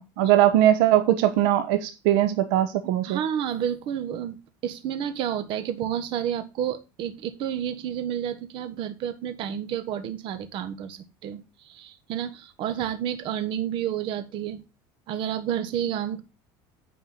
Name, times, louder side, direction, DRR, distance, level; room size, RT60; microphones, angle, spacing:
voice 1, 0.0-3.2, right 12 dB, 80° right, 1.1 m, -21 dB
voice 2, 3.0-4.4 4.6-14.6 15.1-16.2, right 9 dB, 55° right, 1.4 m, -30 dB
9.6 x 4.6 x 5.7 m
cardioid pair, 135°, 10 cm